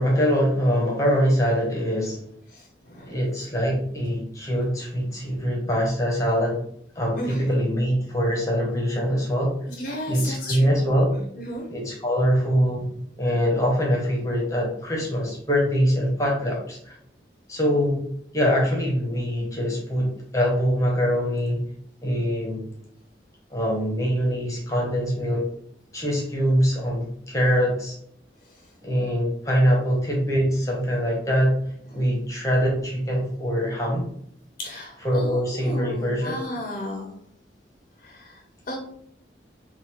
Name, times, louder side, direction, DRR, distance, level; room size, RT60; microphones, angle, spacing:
voice 1, 0.0-2.2 3.1-6.6 7.0-9.5 10.1-11.2 11.7-12.9 13.2-16.9 17.5-18.0 18.3-21.6 22.0-22.6 23.5-25.4 25.9-28.0 28.8-31.6 31.9-34.1 35.0-36.4, equal, 15° left, -2 dB, 1.0 m, -23 dB
voice 2, 2.5-3.2 7.2-7.4 9.8-10.9 11.3-11.6 34.6-37.1 38.0-38.4 38.7-38.8, equal, 45° left, 0 dB, 0.7 m, -34 dB
4.0 x 2.4 x 4.3 m, 0.67 s
head